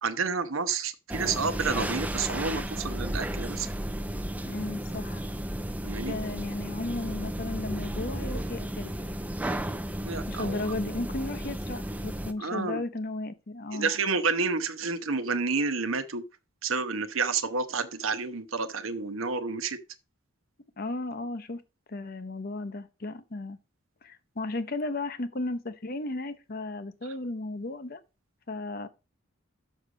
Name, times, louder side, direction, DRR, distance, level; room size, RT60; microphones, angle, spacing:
voice 1, 0.0-3.7 5.8-6.1 10.0-10.7 12.4-12.8 13.7-16.2 16.6-19.8, right 4 dB, 80° right, 1.0 m, -30 dB
sound 1, 1.1-12.3, right 1 dB, 5° right, 0.5 m, -33 dB
voice 2, 4.4-5.2 6.1-8.9 10.3-13.9 20.8-21.6 21.9-23.6 24.0-28.0 28.5-28.9, left 2 dB, 45° left, 0.8 m, -35 dB
6.4 x 6.4 x 5.1 m
head